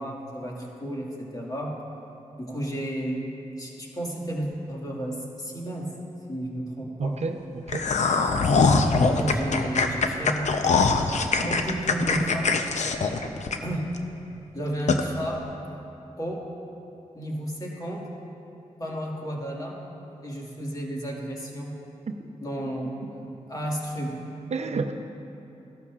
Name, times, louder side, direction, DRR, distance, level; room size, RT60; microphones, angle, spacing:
voice 1, 0.0-1.7 2.4-3.3 3.5-5.9 6.3-7.2 8.9-10.8 11.3-12.5 13.2-13.3 13.6-13.8 14.5-15.4 16.2-16.4 17.1-18.0 18.8-19.8 20.2-21.7 22.4-24.2, right 1 dB, 30° left, -3 dB, 2.0 m, -32 dB
voice 2, 7.0-7.8 24.5-24.9, right 4 dB, 55° right, 6 dB, 0.7 m, -29 dB
sound 1, 7.7-14.0 14.3-14.4 14.9-15.0, left 4 dB, 65° left, 0.7 m, -22 dB
15.0 x 12.0 x 2.5 m, 2.8 s
cardioid pair, 60°, 13 cm